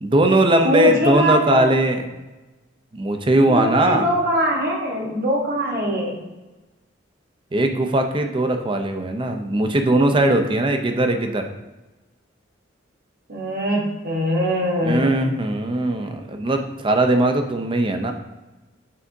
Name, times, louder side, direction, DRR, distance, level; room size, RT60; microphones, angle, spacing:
voice 1, 0.0-2.0 2.9-4.0 7.5-11.4 14.8-18.1, right 1 dB, 25° right, 6 dB, 0.5 m, -19 dB
voice 2, 0.6-1.7 3.5-6.2 13.3-15.2, equal, 50° right, -1 dB, 1.3 m, -22 dB
8.3 x 4.8 x 2.7 m, 1.1 s
head